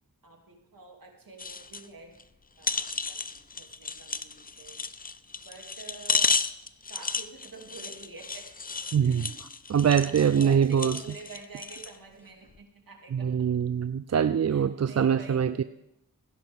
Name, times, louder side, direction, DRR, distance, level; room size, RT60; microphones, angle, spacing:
voice 1, 0.2-2.2 2.6-4.8 5.4-6.4 6.9-8.5 9.0-9.5 10.0-13.3 14.5-15.6, right 4 dB, 60° right, 1 dB, 2.7 m, -47 dB
sound 1, 1.4-1.9 2.2-2.3 2.6-12.0 12.5-12.6, left 4 dB, 25° left, 0.5 m, -33 dB
voice 2, 8.9-9.2 9.7-10.9 13.1-15.6, right 8 dB, 45° right, 12 dB, 0.4 m, -23 dB
16.5 x 10.5 x 3.6 m, 0.86 s
cardioid pair, 50°, 38 cm